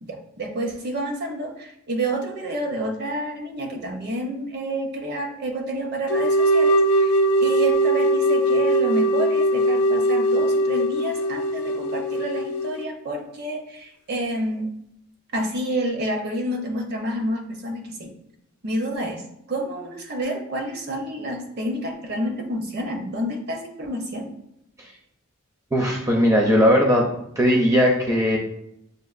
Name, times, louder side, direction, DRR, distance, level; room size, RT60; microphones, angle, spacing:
voice 1, 0.0-7.1 7.4-14.7 15.3-18.1 18.6-19.2 19.5-24.3, right 1 dB, 50° right, 2 dB, 0.7 m, -29 dB
sound 1, 6.1-12.8, right 1 dB, 80° left, 0.4 m, -20 dB
voice 2, 25.7-27.1 27.4-28.4, equal, 15° right, -1 dB, 0.5 m, -18 dB
6.5 x 2.4 x 2.4 m, 0.78 s
head